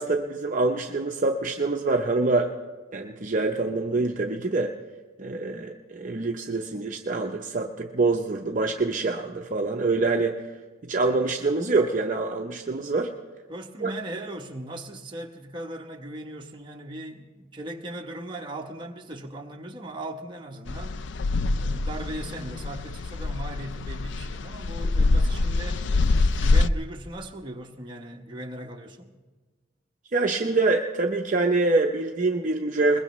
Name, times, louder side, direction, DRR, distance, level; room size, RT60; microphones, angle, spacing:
voice 1, 0.0-2.5 2.9-4.7 5.2-10.4 10.9-13.1 13.8-13.9 30.1-33.0, right 3 dB, 40° right, 0.6 m, -25 dB
voice 2, 13.5-21.0 21.5-25.9 26.4-29.1, right 1 dB, 25° right, 1.0 m, -38 dB
sound 1, 20.7-26.7, left 3 dB, 65° left, 0.4 m, -25 dB
21.5 x 21.0 x 3.1 m
head